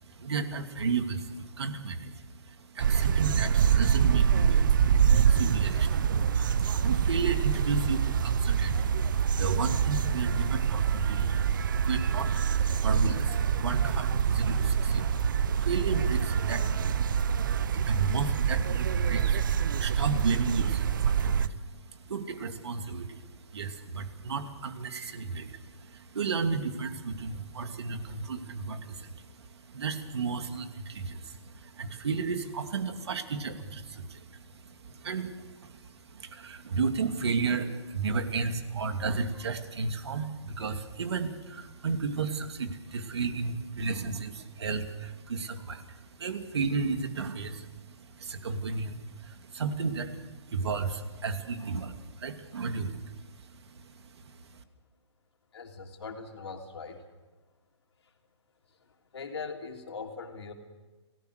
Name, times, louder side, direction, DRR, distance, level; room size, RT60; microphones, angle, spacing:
voice 1, 0.0-54.6, right 4 dB, 65° right, 7 dB, 2.6 m, -34 dB
sound 1, 2.8-21.5, right 7 dB, 45° right, 0.7 m, -25 dB
voice 2, 55.5-57.0 59.1-60.5, left 5 dB, 65° left, 3 dB, 3.3 m, -40 dB
29.0 x 18.0 x 6.6 m, 1.2 s
hypercardioid pair, 165°, 15 cm